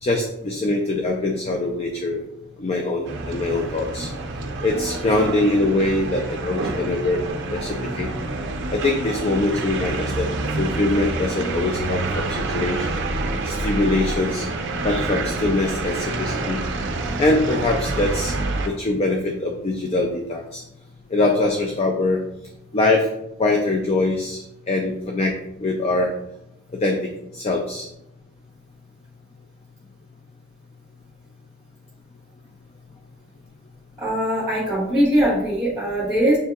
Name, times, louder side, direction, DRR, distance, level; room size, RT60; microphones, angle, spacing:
voice 1, 0.0-2.2 2.6-4.1 4.6-7.2 7.5-8.1 8.7-10.3 10.6-13.0 13.4-14.5 14.8-16.6 17.2-18.3 18.6-20.6 21.1-22.2 22.7-23.1 23.4-25.3 25.6-26.1 26.8-27.0 27.3-27.9, left 2 dB, 30° left, 1 dB, 0.3 m, -23 dB
sound 1, 3.0-18.7, right 2 dB, 55° right, 0.5 m, -27 dB
voice 2, 34.0-36.4, equal, 5° right, -8 dB, 1.1 m, -21 dB
6.7 x 2.7 x 2.3 m, 0.84 s
head